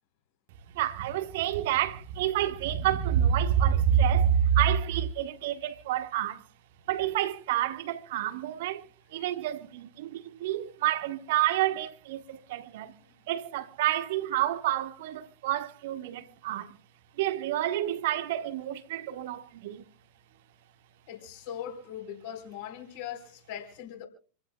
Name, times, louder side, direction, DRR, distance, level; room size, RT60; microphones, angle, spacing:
voice 1, 0.7-6.4 6.9-12.9 13.3-16.7 17.1-19.9, right 10 dB, 50° right, 1.3 m, -28 dB
voice 2, 21.1-24.1, left 9 dB, 50° left, 4.1 m, -40 dB
28.0 x 15.5 x 2.3 m
figure-of-eight pair, 90°, 0 cm